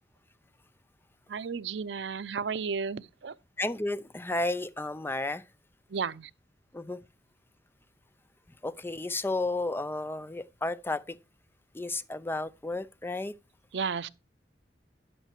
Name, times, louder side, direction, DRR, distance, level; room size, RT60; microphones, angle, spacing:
voice 1, 1.3-3.3 5.9-6.3 13.7-14.1, right 5 dB, 85° right, 0.5 m, -33 dB
voice 2, 3.6-5.4 6.7-7.0 8.6-11.2 11.7-13.3, left 2 dB, 15° left, 0.5 m, -32 dB
11.0 x 5.8 x 4.5 m
head